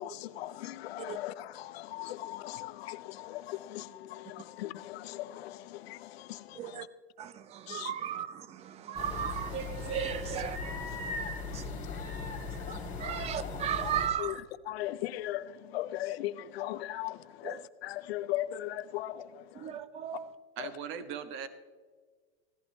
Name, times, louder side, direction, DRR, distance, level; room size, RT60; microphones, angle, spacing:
voice 1, 0.0-6.9 7.7-7.9 11.5-11.9 13.2-13.3 14.2-19.8 20.6-20.7, left 14 dB, 65° left, 0.7 m, -39 dB
voice 2, 7.2-11.1 11.5-11.7 12.7-14.4 17.4-17.6 19.6-20.3, right 9 dB, 20° right, 0.4 m, -36 dB
sound 1, 8.9-14.1, left 4 dB, 25° left, 2.4 m, -38 dB
voice 3, 20.6-21.5, right 7 dB, 35° right, 1.0 m, -39 dB
16.0 x 11.5 x 3.2 m
hypercardioid pair, 130°, 33 cm